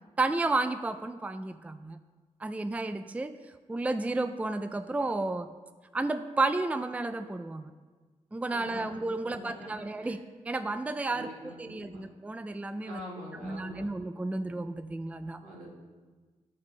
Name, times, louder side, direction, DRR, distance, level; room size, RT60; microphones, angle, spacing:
voice 1, 0.2-2.0 2.4-3.3 3.7-5.5 5.9-7.7 8.3-10.2 10.5-13.0 13.4-15.4, right 2 dB, 10° right, 10 dB, 0.4 m, -32 dB
voice 2, 8.5-9.0 9.2-10.1 11.1-12.1 12.8-13.8 15.4-15.7, equal, 85° right, -6 dB, 2.6 m, -45 dB
11.5 x 5.4 x 4.0 m, 1.4 s
cardioid pair, 65°, 13 cm